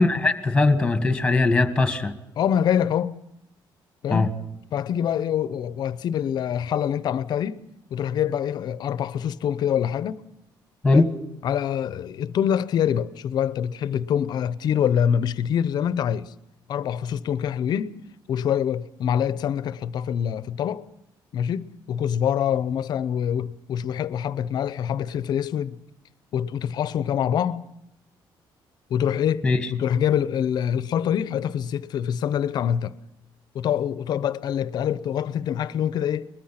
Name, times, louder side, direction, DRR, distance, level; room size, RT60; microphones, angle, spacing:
voice 1, 0.0-2.1 4.1-4.3 10.8-11.1 29.4-29.6, left 3 dB, 10° left, 1.7 m, -20 dB
voice 2, 2.4-3.2 4.0-4.4 4.7-7.6 7.9-10.2 10.9-11.1 11.4-16.3 16.7-18.0 18.3-20.9 21.3-25.8 26.3-27.6 28.9-29.5 29.7-32.9 33.5-36.3, left 9 dB, 55° left, 0.8 m, -25 dB
22.5 x 21.0 x 5.8 m
cardioid pair, 175°, 9 cm